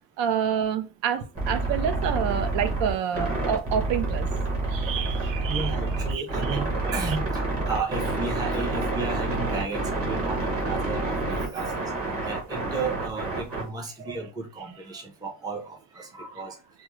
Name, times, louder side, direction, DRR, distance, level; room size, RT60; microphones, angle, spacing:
voice 1, 0.2-4.3 4.7-5.8 6.1-6.2 6.5-6.6 6.9-7.2, right 8 dB, 80° right, 0.6 m, -28 dB
sound 1, 1.3-13.6, right 2 dB, 30° right, 1.0 m, -28 dB
voice 2, 5.5-16.6, right 4 dB, 10° right, 0.4 m, -34 dB
3.5 x 2.0 x 3.0 m
cardioid pair, 175°, 44 cm